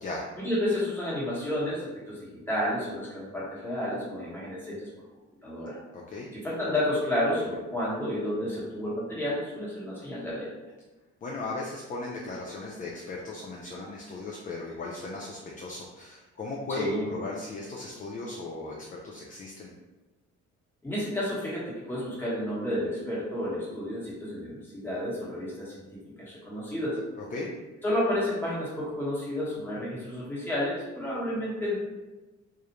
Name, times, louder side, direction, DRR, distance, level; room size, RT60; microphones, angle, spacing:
voice 1, 0.4-4.9 5.4-5.8 6.3-10.5 16.7-17.1 20.8-27.0 27.8-31.8, left 1 dB, 5° left, -8 dB, 1.1 m, -31 dB
voice 2, 5.9-6.3 11.2-19.7 27.3-27.5, left 3 dB, 30° left, -2 dB, 0.4 m, -37 dB
2.3 x 2.0 x 2.9 m, 1.1 s
cardioid pair, 90°, 30 cm